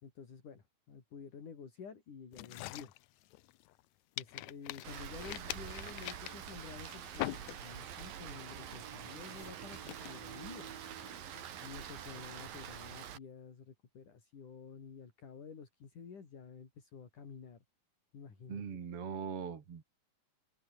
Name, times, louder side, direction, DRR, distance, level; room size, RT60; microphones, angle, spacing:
voice 1, 0.0-2.9 4.2-10.7 11.6-17.6 18.1-18.6, left 6 dB, 65° left, 5.4 m, -51 dB
sound 1, 2.3-3.8 4.2-8.0 8.3-8.7 9.1-11.5, left 17 dB, 85° left, 1.6 m, -44 dB
Rain, 4.8-13.2, right 9 dB, 85° right, 4.1 m, -46 dB
voice 2, 18.5-19.8, right 7 dB, 45° right, 3.0 m, -41 dB
omnidirectional pair, 3.9 m